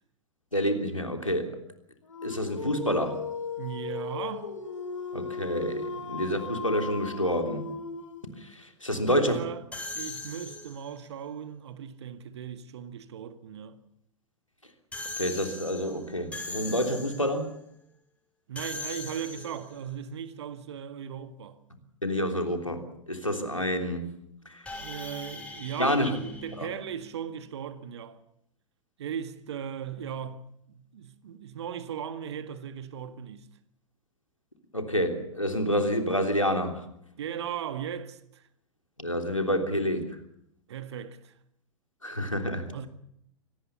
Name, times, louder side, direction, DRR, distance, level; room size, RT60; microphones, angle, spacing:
voice 1, 0.5-1.6 2.2-3.2 5.1-7.7 8.4-9.4 15.2-17.5 22.0-24.1 24.5-24.7 25.8-26.2 26.6-26.7 34.7-36.8 39.0-40.1 42.0-42.7, equal, 90° left, 3.3 m, -28 dB
Dog, 2.1-8.4, left 4 dB, 75° left, 2.4 m, -36 dB
voice 2, 3.6-4.6 8.9-9.6 9.9-13.8 18.5-21.6 24.8-28.2 29.0-33.5 37.2-38.5 40.7-41.3 42.7-42.9, right 8 dB, 60° right, 1.9 m, -37 dB
sound 1, 9.7-11.0 14.9-17.4 18.5-19.8 24.6-27.2, left 3 dB, 10° left, 6.3 m, -40 dB
25.0 x 18.5 x 7.1 m
figure-of-eight pair, 95°, 16 cm